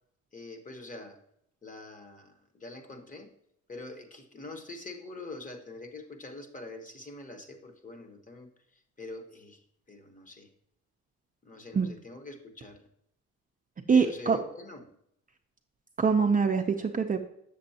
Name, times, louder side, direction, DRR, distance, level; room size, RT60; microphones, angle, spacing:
voice 1, 0.3-1.2 1.6-3.3 3.7-10.5 11.4-12.9 13.9-14.8, left 3 dB, 25° left, 6 dB, 1.1 m, -44 dB
voice 2, 13.9-14.4 16.0-17.2, right 5 dB, 25° right, 4 dB, 0.5 m, -24 dB
7.5 x 6.9 x 2.8 m, 0.73 s
cardioid pair, 90°, 30 cm